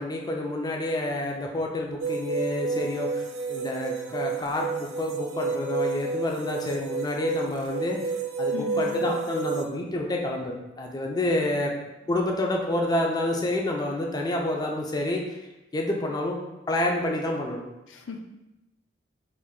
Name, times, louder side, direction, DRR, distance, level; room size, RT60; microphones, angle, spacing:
voice 1, 0.0-3.2 3.5-8.0 8.4-11.7 12.1-15.2 15.7-16.4 16.7-17.6, left 1 dB, 20° left, 0 dB, 0.4 m, -28 dB
sound 1, 2.0-9.7, right 4 dB, 85° right, 0.4 m, -30 dB
voice 2, 8.5-9.2 17.9-18.2, left 3 dB, 85° left, 4 dB, 0.4 m, -37 dB
3.7 x 2.4 x 3.6 m, 0.97 s
head